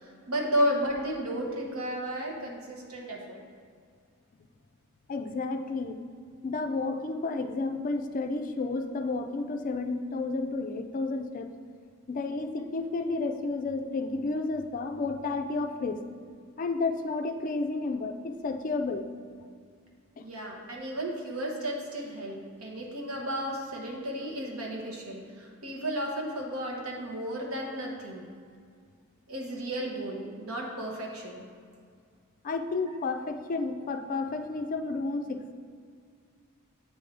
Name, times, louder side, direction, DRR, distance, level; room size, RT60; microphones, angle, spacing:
voice 1, 0.3-3.4 20.2-28.3 29.3-31.5 32.9-33.0, equal, 85° right, -1 dB, 1.1 m, -33 dB
voice 2, 5.1-6.0 6.4-11.5 12.1-16.0 16.6-19.1 20.2-20.3 32.4-35.5, left 3 dB, 40° left, 6 dB, 0.3 m, -31 dB
8.6 x 3.4 x 3.8 m, 2.1 s
head